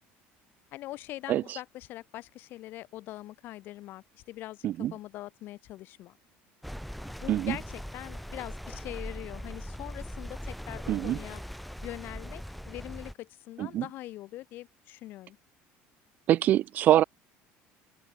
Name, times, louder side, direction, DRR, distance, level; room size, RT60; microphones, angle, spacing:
voice 1, 0.7-6.1 7.0-11.4 11.8-15.4, left 16 dB, 50° left, 2.9 m, -43 dB
voice 2, 1.3-1.6 4.6-4.9 7.3-7.6 10.9-11.2 13.6-13.8 16.3-17.0, right 13 dB, 40° right, 0.4 m, -24 dB
sound 1, 6.6-13.1, equal, ahead, 1.4 m, -40 dB
open air
cardioid pair, 170°, 5 cm